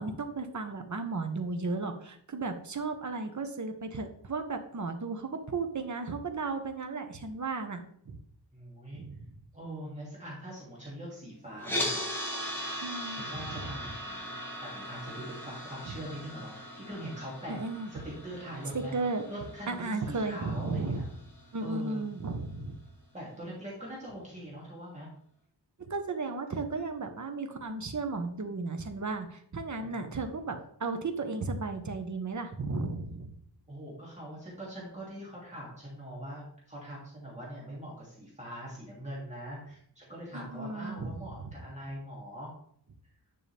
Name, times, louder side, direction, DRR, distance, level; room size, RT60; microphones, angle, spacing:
voice 1, 0.0-8.2 8.9-9.3 12.8-13.6 15.8-16.0 17.5-17.9 18.7-19.2 19.7-21.1 21.5-22.8 25.9-33.4 40.3-41.5, right 3 dB, 45° right, 6 dB, 1.2 m, -35 dB
voice 2, 8.5-9.0 9.5-12.3 13.1-14.4 14.6-17.6 17.9-18.9 19.3-21.1 21.6-22.0 23.1-25.1 29.8-30.3 33.7-42.5, right 1 dB, 15° right, -6 dB, 2.8 m, -42 dB
sound 1, 11.6-21.7, left 1 dB, 5° left, 2.1 m, -39 dB
10.0 x 6.0 x 3.5 m, 0.65 s
wide cardioid pair, 130°, 42 cm